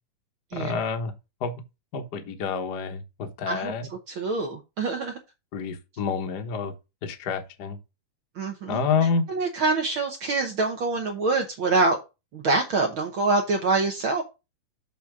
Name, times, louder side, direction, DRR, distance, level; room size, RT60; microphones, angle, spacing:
voice 1, 0.5-1.1 1.4-1.5 1.9-3.9 5.5-6.7 7.0-7.8 8.7-9.3, left 5 dB, 70° left, 0.9 m, -28 dB
voice 2, 3.5-5.2 8.3-8.9 9.3-12.0 12.3-14.2, right 3 dB, 65° right, 1.2 m, -25 dB
7.2 x 4.1 x 5.9 m
omnidirectional pair, 3.6 m